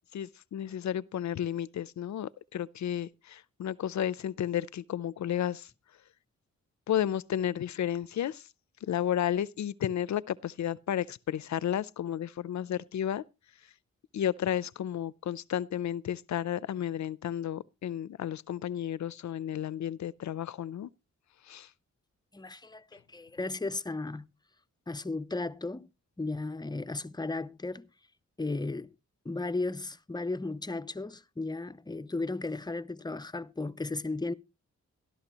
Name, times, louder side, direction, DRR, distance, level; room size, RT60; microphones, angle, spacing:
voice 1, 0.1-5.7 6.9-8.4 8.9-13.2 14.1-20.9 21.5-21.7, left 10 dB, 75° left, 0.5 m, -32 dB
voice 2, 22.3-24.3 24.9-25.9 26.2-27.9 28.4-28.9 29.2-34.3, left 3 dB, 15° left, 0.6 m, -35 dB
13.0 x 12.0 x 2.9 m
wide cardioid pair, 90°, 29 cm